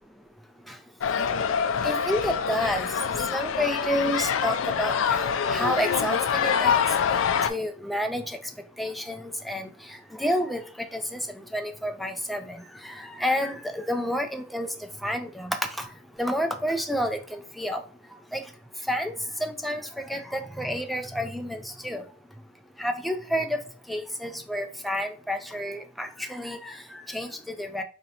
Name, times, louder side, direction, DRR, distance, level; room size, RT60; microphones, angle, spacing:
sound 1, 1.0-7.5, left 7 dB, 70° left, 0.3 m, -25 dB
voice 1, 1.8-2.9 3.3-6.8 7.5-8.4 8.8-9.7 10.2-10.6 10.9-11.2 11.5-12.6 12.8-14.7 15.0-15.9 16.2-17.8 18.3-18.4 18.9-19.1 19.4-19.8 20.1-22.0 22.8-23.6 23.9-26.7 27.1-27.8, equal, ahead, 5 dB, 0.4 m, -29 dB
2.9 x 2.7 x 4.2 m, 0.38 s
head